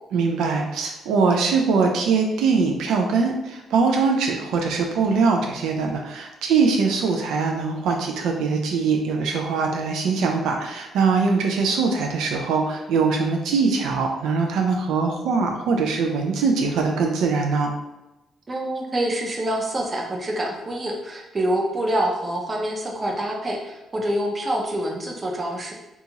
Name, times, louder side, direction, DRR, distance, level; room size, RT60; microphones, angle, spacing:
voice 1, 0.1-17.7, right 4 dB, 85° right, 2 dB, 0.3 m, -22 dB
voice 2, 18.5-25.7, right 1 dB, 30° right, 0 dB, 0.6 m, -26 dB
2.7 x 2.3 x 2.8 m, 0.99 s
cardioid pair, 90°, 0 cm